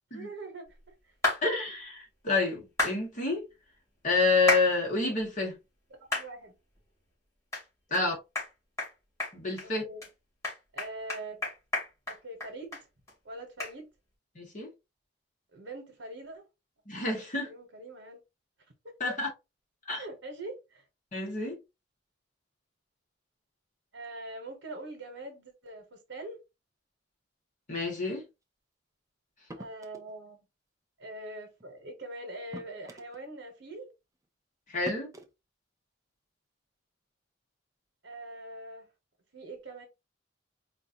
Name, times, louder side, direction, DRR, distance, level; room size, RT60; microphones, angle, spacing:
voice 1, 0.1-0.8 6.1-6.5 7.9-8.1 9.6-10.1 10.7-11.5 12.1-12.9 13.2-13.9 15.5-16.4 17.0-18.2 18.8-19.2 20.0-20.8 23.9-26.4 29.5-30.5 31.0-33.9 38.0-38.9 39.3-39.8, right 2 dB, 70° right, 1.1 m, -43 dB
sound 1, 1.2-1.4 2.8-3.0 4.5-4.7 5.2-5.3 6.1-6.3 6.8-6.9 7.5-7.6 7.9-8.0 8.3-8.5 8.8-8.9 9.2-9.7 10.0-10.1 10.4-12.8 13.1-13.2 13.6-13.7, left 2 dB, 15° left, 2.3 m, -30 dB
voice 2, 1.4-3.4 4.0-5.6 7.9-8.1 9.3-9.8 14.3-14.7 16.9-17.5 19.0-19.3 19.9-20.0 21.1-21.6 27.7-28.2 34.7-35.1, left 3 dB, 45° left, 1.6 m, -28 dB
sound 2, 29.5-30.1 31.6-31.7 32.5-33.2 34.2-34.3 34.9-35.3, right 1 dB, 20° right, 0.5 m, -44 dB
4.4 x 2.6 x 2.8 m
head